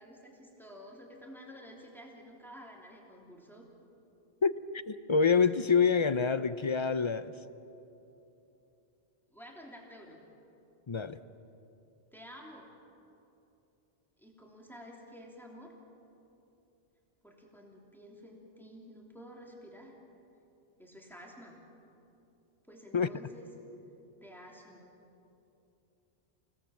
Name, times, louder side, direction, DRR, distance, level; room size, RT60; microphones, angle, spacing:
voice 1, 0.0-3.7 9.3-10.2 12.1-12.7 14.2-15.7 17.2-19.9 20.8-21.6 22.7-23.5 24.2-24.9, equal, ahead, -1 dB, 3.1 m, -51 dB
voice 2, 4.9-7.3 10.9-11.2 22.9-23.1, left 5 dB, 35° left, 13 dB, 0.5 m, -26 dB
28.0 x 17.5 x 7.6 m, 2.9 s
omnidirectional pair, 1.1 m